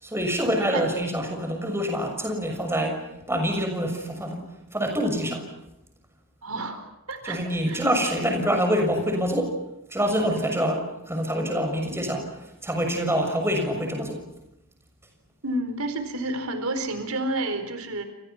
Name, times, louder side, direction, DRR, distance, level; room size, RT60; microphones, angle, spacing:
voice 1, 0.0-4.4 4.7-5.5 7.2-9.6 9.9-12.4 12.6-14.2, equal, 10° right, 4 dB, 6.5 m, -26 dB
voice 2, 6.4-7.4 7.7-7.8 15.4-18.0, right 2 dB, 85° right, 8 dB, 4.4 m, -30 dB
29.5 x 28.5 x 5.9 m, 0.85 s
head